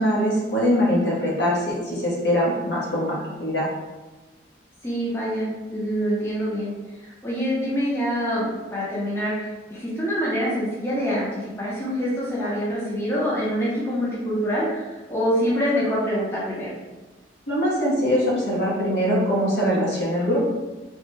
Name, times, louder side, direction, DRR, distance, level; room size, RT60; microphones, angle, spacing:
voice 1, 0.0-3.7 17.5-20.4, equal, 65° left, -5 dB, 0.9 m, -22 dB
voice 2, 4.8-6.7 7.0-16.7, equal, 15° left, -7 dB, 0.6 m, -25 dB
3.2 x 2.0 x 3.1 m, 1.2 s
head